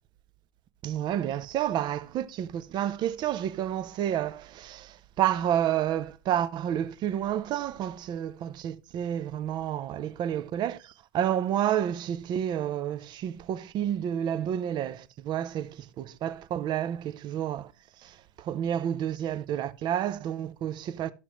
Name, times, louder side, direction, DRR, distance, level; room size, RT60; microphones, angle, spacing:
voice 1, 0.8-17.7 18.0-21.1, right 10 dB, 35° right, 0.7 m, -30 dB
12.5 x 6.0 x 3.0 m
hypercardioid pair, 95°, 12 cm